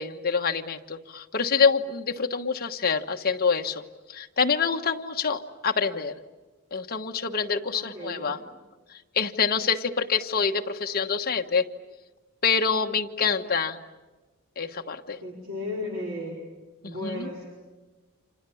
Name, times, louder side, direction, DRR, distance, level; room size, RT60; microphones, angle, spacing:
voice 1, 0.0-3.8 4.1-6.1 6.7-8.4 9.1-11.6 12.4-13.8 14.6-15.2 16.8-17.3, left 5 dB, 45° left, 4 dB, 1.3 m, -26 dB
voice 2, 7.7-8.4 13.2-13.4 15.2-16.4 16.8-17.5, left 2 dB, 65° right, -1 dB, 4.8 m, -35 dB
30.0 x 27.0 x 7.1 m, 1.2 s
head